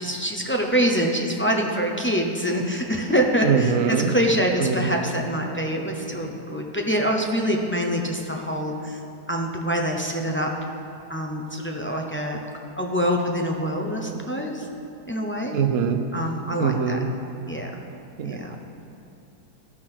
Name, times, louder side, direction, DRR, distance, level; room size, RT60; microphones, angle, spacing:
voice 1, 0.0-9.0 9.3-10.5 11.1-12.4 12.8-14.7 15.1-15.6 16.1-17.0 17.5-17.7 18.2-18.5, equal, 20° left, 0 dB, 0.3 m, -25 dB
voice 2, 3.4-4.1 4.6-5.1 15.5-16.0 16.6-17.1 18.2-18.6, right 6 dB, 60° right, 7 dB, 1.1 m, -23 dB
14.5 x 6.1 x 5.9 m, 2.9 s
omnidirectional pair, 1.8 m